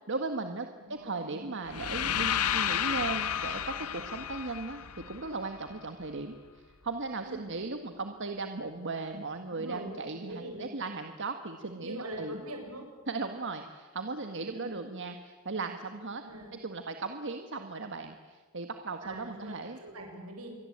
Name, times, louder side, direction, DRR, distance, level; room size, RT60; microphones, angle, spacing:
voice 1, 0.1-12.4 13.1-16.2 16.5-19.8, right 3 dB, 55° right, 6 dB, 1.6 m, -37 dB
voice 2, 0.8-1.5 7.2-7.5 9.5-10.7 11.7-12.8 14.5-14.7 16.2-16.6 19.0-19.5 19.8-20.6, right 1 dB, 75° right, 2 dB, 7.6 m, -43 dB
sound 1, 1.7-5.7, left 9 dB, 85° left, 1.0 m, -32 dB
28.0 x 23.0 x 8.8 m, 1.4 s
head